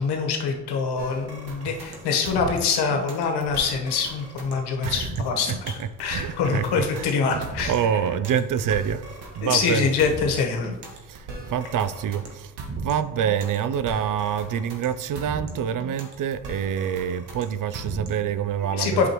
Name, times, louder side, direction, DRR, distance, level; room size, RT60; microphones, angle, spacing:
voice 1, 0.0-5.7 6.0-7.7 9.4-10.7 18.7-19.1, left 5 dB, 75° left, 3 dB, 1.3 m, -25 dB
sound 1, 1.0-18.4, right 2 dB, 75° right, 1.7 m, -38 dB
voice 2, 5.5-9.9 11.0-19.1, right 8 dB, 55° right, 13 dB, 0.5 m, -27 dB
7.9 x 5.8 x 3.0 m, 1.1 s
supercardioid pair, 70°, 39 cm